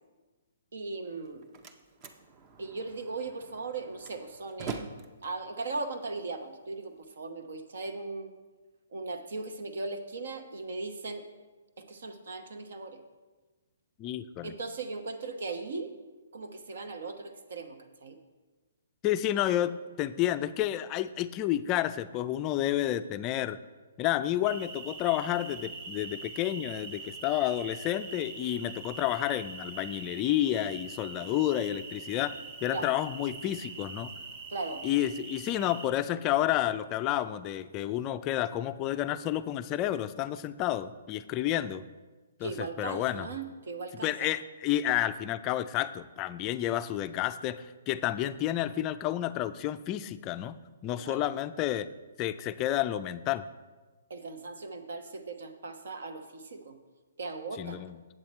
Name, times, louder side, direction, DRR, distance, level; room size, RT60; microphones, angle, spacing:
voice 1, 0.7-1.5 2.6-4.9 5.2-8.3 8.9-11.2 11.8-13.0 14.4-15.9 16.3-18.2 32.7-32.9 34.5-34.8 42.4-44.3 51.0-51.3 54.1-56.8 57.2-57.8, right 3 dB, 70° right, 6 dB, 1.0 m, -38 dB
Slam, 1.1-7.0, right 4 dB, 25° right, 0.6 m, -45 dB
voice 2, 14.0-14.5 19.0-23.6 24.0-32.3 32.6-34.1 34.8-41.8 42.4-43.3 44.0-50.6 50.8-51.9 52.2-53.4 57.6-58.0, left 13 dB, 20° left, 12 dB, 0.3 m, -30 dB
sound 1, 24.4-35.9, right 4 dB, 40° right, 0.9 m, -43 dB
7.8 x 7.8 x 4.3 m, 1.3 s
hypercardioid pair, 160°, 0 cm